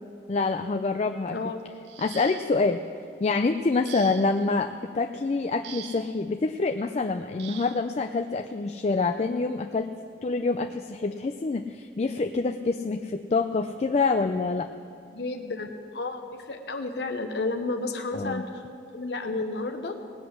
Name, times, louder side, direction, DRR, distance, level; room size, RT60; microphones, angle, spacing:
voice 1, 0.3-1.4 2.0-2.8 3.2-9.9 10.2-14.7 18.1-18.4, left 3 dB, 35° left, 7 dB, 0.4 m, -26 dB
sound 1, 1.8-2.7 3.8-4.5 5.6-6.2 7.4-7.9 9.1-9.2 9.7-9.9, right 11 dB, 70° right, 0.5 m, -44 dB
voice 2, 15.1-16.2 16.5-18.6 18.9-20.0, left 3 dB, 65° left, 5 dB, 0.8 m, -31 dB
19.0 x 8.1 x 6.3 m, 2.6 s
head